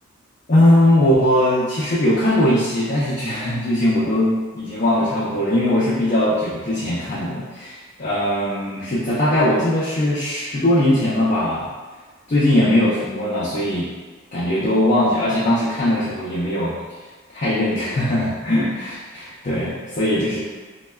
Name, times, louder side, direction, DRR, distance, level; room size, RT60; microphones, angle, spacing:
voice 1, 0.5-11.7 12.3-13.9 14.3-16.8 17.3-20.4, left 1 dB, 35° left, -9 dB, 0.4 m, -20 dB
3.2 x 2.1 x 2.2 m, 1.3 s
head